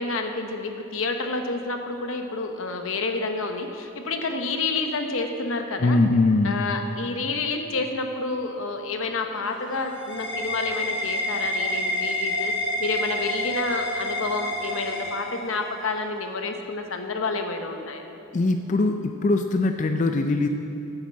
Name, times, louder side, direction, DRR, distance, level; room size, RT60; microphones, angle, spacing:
voice 1, 0.0-6.0 6.4-12.5 12.8-18.0, left 3 dB, 75° left, 5 dB, 0.9 m, -29 dB
voice 2, 5.8-6.6 18.3-20.5, left 2 dB, 35° left, 6 dB, 0.4 m, -21 dB
sound 1, 9.3-15.8, left 1 dB, 60° left, 1.5 m, -29 dB
8.3 x 7.9 x 7.4 m, 2.9 s
head